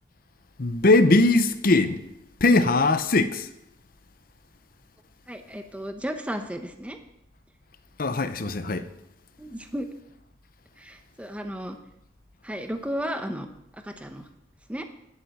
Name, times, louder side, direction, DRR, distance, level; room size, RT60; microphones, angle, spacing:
voice 1, 0.6-2.0 2.4-3.5 8.0-8.9, left 2 dB, 50° left, 0.7 m, -20 dB
voice 2, 5.3-7.0 9.4-9.9 10.8-11.8 12.4-13.5 13.8-14.3 14.7-14.8, equal, 5° right, 0.8 m, -33 dB
11.0 x 8.1 x 6.5 m
head